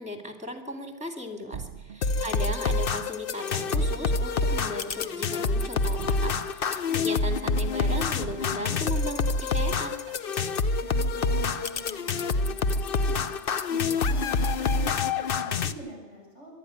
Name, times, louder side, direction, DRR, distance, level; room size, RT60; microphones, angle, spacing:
voice 1, 0.0-10.0, left 1 dB, 5° right, 4 dB, 2.8 m, -36 dB
sound 1, 1.5-2.7 3.0-4.9 5.2-7.1 7.5-9.3 9.7-10.3, right 6 dB, 55° right, 1.1 m, -43 dB
sound 2, 2.0-15.7, left 3 dB, 55° left, 0.9 m, -27 dB
voice 2, 6.8-7.4 10.8-13.3 13.7-16.5, right 1 dB, 85° left, -3 dB, 7.6 m, -44 dB
23.5 x 12.5 x 9.6 m, 1.2 s
omnidirectional pair, 1.2 m